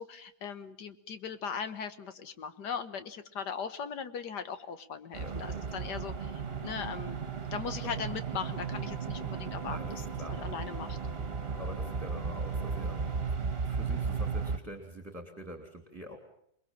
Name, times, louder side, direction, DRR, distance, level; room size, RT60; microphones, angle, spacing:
voice 1, 0.0-6.3 6.6-7.2 7.5-9.8 10.4-11.0, left 6 dB, 85° left, 11 dB, 2.0 m, -39 dB
sound 1, 5.1-14.6, right 5 dB, 35° right, 1.7 m, -35 dB
voice 2, 5.2-5.7 9.7-10.4 11.6-16.2, equal, 10° right, 5 dB, 2.8 m, -45 dB
sound 2, 8.3-13.3, left 4 dB, 55° left, 2.8 m, -49 dB
27.5 x 21.0 x 7.4 m, 0.72 s
omnidirectional pair, 1.7 m